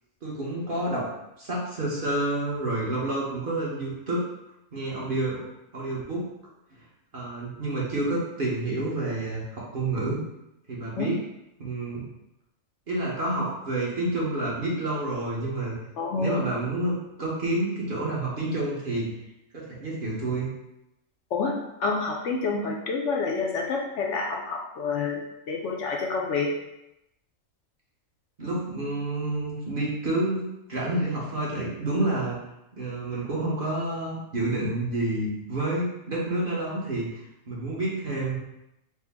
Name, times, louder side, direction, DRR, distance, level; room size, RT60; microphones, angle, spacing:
voice 1, 0.2-1.1 1.4-4.2 4.7-5.4 5.7-6.3 6.7-6.8 7.1-10.2 10.7-11.2 11.6-12.0 12.9-15.7 16.2-19.1 19.5-20.5 28.4-30.4 30.7-32.4 32.7-37.2 37.5-38.4, right 2 dB, 45° right, -5 dB, 1.0 m, -29 dB
voice 2, 16.0-16.4 21.3-26.5, left 4 dB, 70° left, 0 dB, 0.8 m, -28 dB
4.6 x 2.0 x 3.4 m, 0.87 s
omnidirectional pair, 1.4 m